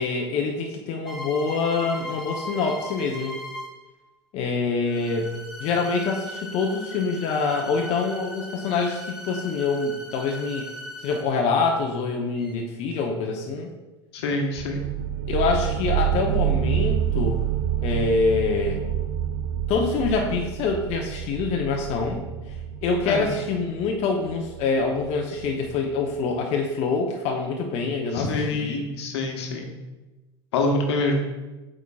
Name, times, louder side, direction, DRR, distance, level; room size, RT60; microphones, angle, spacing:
voice 1, 0.0-3.4 4.3-5.3 5.6-10.7 11.0-13.7 15.3-17.4 17.8-18.8 19.7-22.2 22.8-28.8, left 4 dB, 45° left, 1 dB, 0.8 m, -25 dB
sound 1, 1.1-3.9 4.9-11.5 12.4-12.5, left 1 dB, ahead, 1.4 m, -38 dB
voice 2, 14.1-14.8 23.1-23.2 28.1-29.7 30.5-31.2, left 2 dB, 70° left, 2 dB, 1.2 m, -25 dB
sound 2, 14.6-26.0, right 10 dB, 60° right, 0.4 m, -28 dB
8.2 x 5.0 x 2.3 m, 1.1 s
hypercardioid pair, 85°, 14 cm